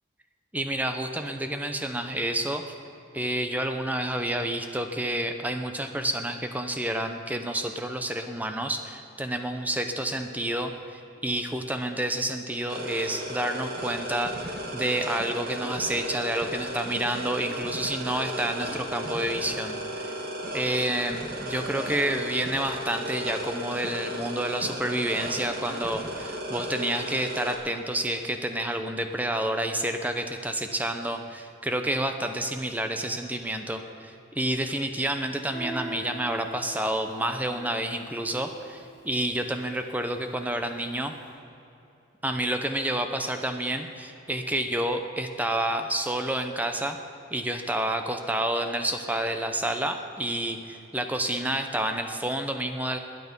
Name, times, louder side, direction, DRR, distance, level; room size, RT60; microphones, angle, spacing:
voice 1, 0.5-2.6 3.1-20.1 20.5-41.1 42.2-47.0 47.3-53.0, right 1 dB, 10° right, 6 dB, 0.8 m, -29 dB
sound 1, 12.7-27.5, right 1 dB, 50° right, 1.8 m, -35 dB
Guitar, 35.5-41.0, right 2 dB, 10° left, 3.4 m, -43 dB
20.0 x 9.3 x 5.4 m, 2.8 s
head